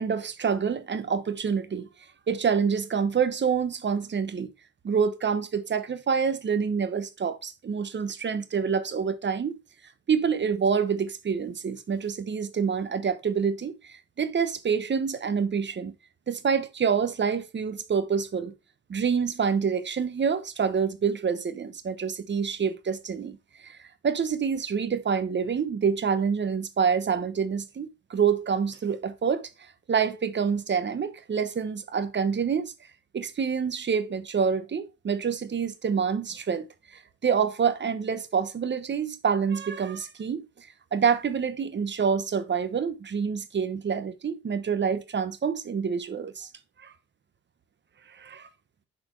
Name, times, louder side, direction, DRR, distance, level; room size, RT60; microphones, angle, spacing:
voice 1, 0.0-1.9 2.3-4.5 4.8-9.6 10.1-15.9 16.3-18.5 18.9-23.4 23.6-23.8 24.0-29.5 29.9-32.7 33.1-36.7 37.2-46.5 46.8-46.9 48.1-48.5, right 6 dB, 40° right, 1.0 m, -27 dB
6.5 x 4.4 x 4.4 m
cardioid pair, 90°, 30 cm